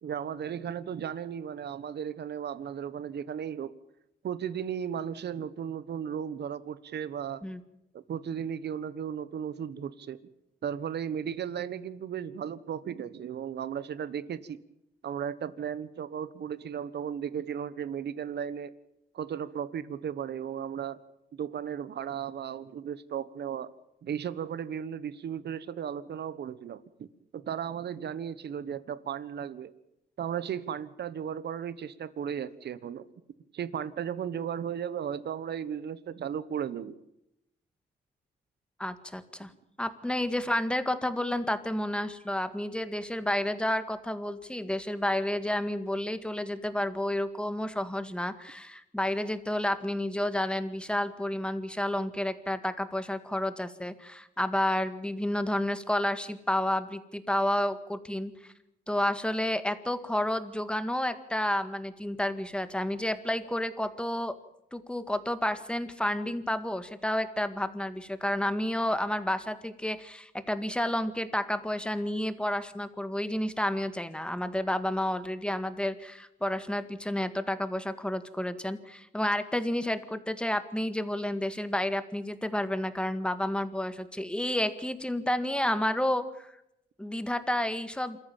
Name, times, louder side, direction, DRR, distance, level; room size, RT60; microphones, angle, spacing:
voice 1, 0.0-3.7 4.2-7.5 7.9-10.2 10.6-14.6 15.0-18.7 19.1-21.0 21.3-23.7 24.0-27.1 27.3-29.7 30.2-33.0 33.5-37.0, right 8 dB, 65° right, 16 dB, 1.3 m, -35 dB
voice 2, 38.8-39.5 39.8-58.3 58.9-64.4 64.7-86.5 87.0-88.2, left 1 dB, 5° left, 10 dB, 1.9 m, -30 dB
27.0 x 14.0 x 9.0 m, 0.83 s
cardioid pair, 95°, 18 cm